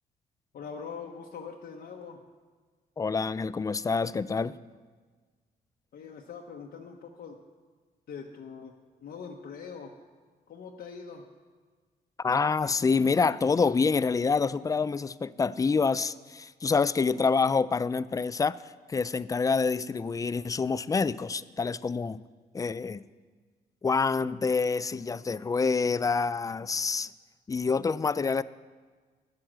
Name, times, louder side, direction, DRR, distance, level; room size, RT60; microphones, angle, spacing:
voice 1, 0.5-2.2 5.9-7.4 8.1-8.7 9.0-10.0 10.5-11.2, left 6 dB, 70° left, 0 dB, 1.0 m, -42 dB
voice 2, 3.0-4.6 12.2-18.6 18.9-22.2 22.5-23.0 23.8-27.1 27.5-28.4, left 4 dB, 20° left, 17 dB, 0.3 m, -27 dB
10.5 x 7.8 x 7.4 m, 1.5 s
cardioid pair, 85°, 17 cm